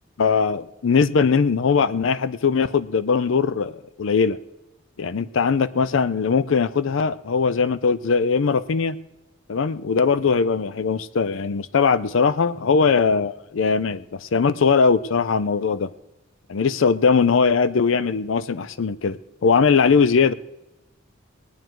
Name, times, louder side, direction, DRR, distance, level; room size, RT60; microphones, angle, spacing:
voice 1, 0.2-4.4 5.0-9.0 9.5-15.9 16.5-20.3, left 5 dB, 70° left, 16 dB, 0.5 m, -20 dB
19.5 x 9.2 x 4.6 m, 0.95 s
head